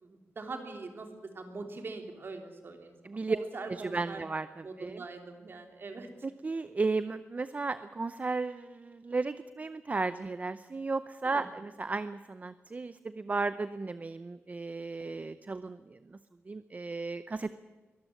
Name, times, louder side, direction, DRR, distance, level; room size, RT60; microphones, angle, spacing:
voice 1, 0.0-2.9 3.3-4.2 4.6-6.3 11.2-11.5, right 3 dB, 50° right, 4 dB, 3.3 m, -42 dB
voice 2, 3.0-3.4 3.8-4.5 4.8-5.0 6.2-16.0 16.5-17.5, right 3 dB, 30° right, 13 dB, 0.6 m, -34 dB
22.5 x 13.5 x 9.8 m, 1.3 s
wide cardioid pair, 130°, 5 cm